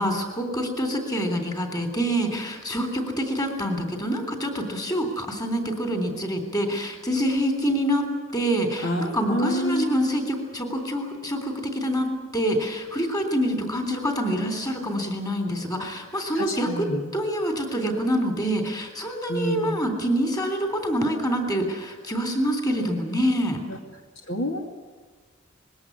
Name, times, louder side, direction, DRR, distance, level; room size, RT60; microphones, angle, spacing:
voice 1, 0.0-23.6, equal, 20° left, 5 dB, 3.3 m, -26 dB
voice 2, 8.8-9.8 16.3-17.0 19.3-19.7 23.7-23.8 24.3-24.7, equal, 75° left, 3 dB, 2.5 m, -27 dB
21.0 x 17.0 x 9.8 m, 1.4 s
head